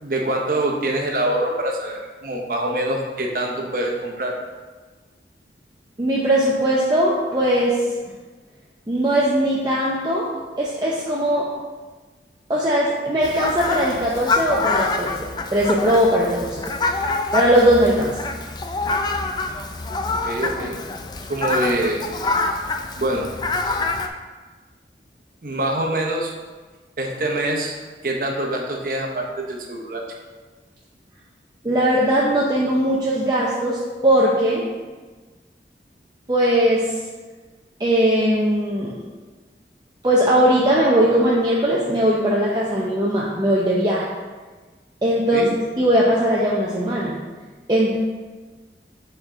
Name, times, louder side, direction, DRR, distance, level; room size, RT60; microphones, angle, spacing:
voice 1, 0.0-4.4 20.2-20.8 21.3-22.0 23.0-23.3 25.4-26.3 27.0-27.8 28.0-30.0 45.3-45.5, right 1 dB, 50° right, 1 dB, 0.9 m, -24 dB
voice 2, 6.0-7.8 8.9-10.3 10.6-11.5 12.5-15.2 15.5-16.6 17.3-18.2 31.6-34.6 36.3-36.9 37.8-39.0 40.0-44.1 45.0-45.5 45.8-47.2 47.7-47.9, equal, 25° right, -5 dB, 0.6 m, -19 dB
Fowl, 13.2-24.1, left 3 dB, 25° left, 0.3 m, -26 dB
6.9 x 4.4 x 3.8 m, 1.3 s
head